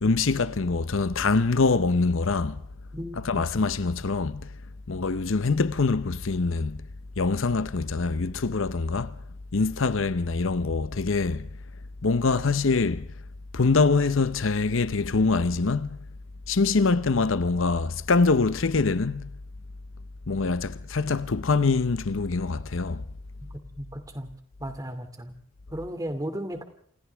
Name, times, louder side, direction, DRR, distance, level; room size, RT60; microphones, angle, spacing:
voice 1, 0.0-2.6 3.1-4.5 4.9-6.8 7.2-9.2 9.5-11.5 12.0-13.1 13.5-16.0 16.5-19.3 20.3-23.0, left 4 dB, 70° left, 0.8 m, -24 dB
voice 2, 2.9-3.5 23.8-24.3 24.6-25.3 25.7-26.6, equal, 15° right, 2.5 m, -35 dB
29.5 x 27.5 x 3.5 m
head